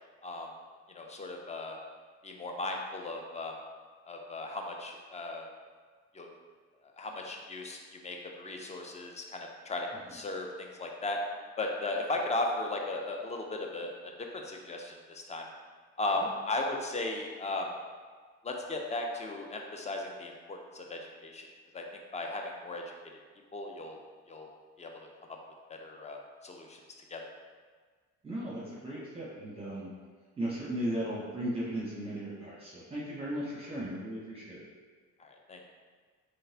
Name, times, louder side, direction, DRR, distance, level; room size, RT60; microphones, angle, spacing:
voice 1, 0.9-1.8 2.2-3.5 4.1-5.5 6.1-6.3 7.0-11.2 11.6-15.5 16.0-17.7 18.4-21.5 21.7-22.8 23.5-24.0 24.3-24.5 24.8-25.4 25.7-26.8 27.1-27.2 35.2-35.7, left 2 dB, 20° left, 2 dB, 0.5 m, -36 dB
voice 2, 28.2-29.9 30.4-34.6, right 1 dB, 20° right, -7 dB, 0.8 m, -36 dB
3.8 x 3.2 x 2.8 m, 1.5 s
cardioid pair, 90°, 30 cm